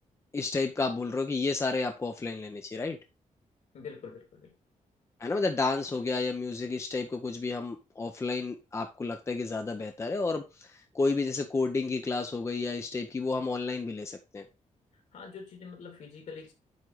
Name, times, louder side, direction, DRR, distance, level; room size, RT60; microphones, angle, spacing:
voice 1, 0.3-3.0 5.2-14.4, left 3 dB, 20° left, 0.7 m, -31 dB
voice 2, 3.7-4.5 15.1-16.5, left 5 dB, 60° left, 2.9 m, -45 dB
9.2 x 3.8 x 4.6 m
wide cardioid pair, 180°, 13 cm